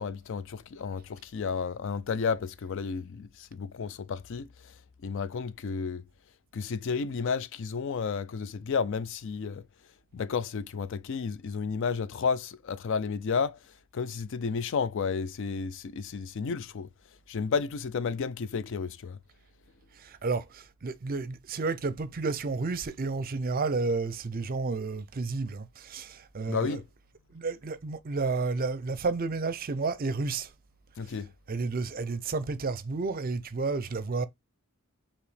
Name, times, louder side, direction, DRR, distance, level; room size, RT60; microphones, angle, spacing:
voice 1, 0.0-6.0 6.5-9.7 10.1-16.9 17.3-19.2 26.5-26.8 31.0-31.3, left 5 dB, 65° left, 0.4 m, -32 dB
voice 2, 20.0-26.8 27.3-30.5 31.1-31.2 31.5-34.3, right 4 dB, 45° right, 0.5 m, -31 dB
4.9 x 2.9 x 3.2 m
head